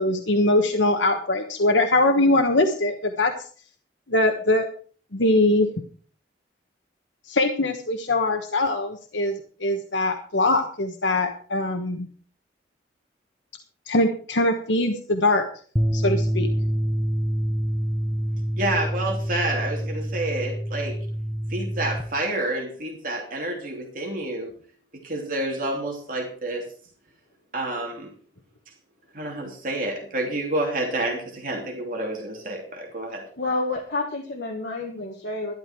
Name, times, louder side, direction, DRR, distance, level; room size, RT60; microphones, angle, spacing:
voice 1, 0.0-3.5 4.1-4.7 5.1-5.7 7.3-12.1 13.9-15.4 15.9-16.5, left 2 dB, 80° left, 5 dB, 1.2 m, -22 dB
sound 1, 15.8-22.0, equal, 10° right, 1.0 m, -26 dB
voice 2, 18.6-21.0 21.5-24.5 25.0-26.6 27.5-28.1 29.1-33.2, right 1 dB, 45° right, 0 dB, 3.0 m, -29 dB
voice 3, 33.4-35.5, left 2 dB, 65° left, 0 dB, 1.8 m, -29 dB
12.0 x 12.0 x 4.6 m, 0.44 s
head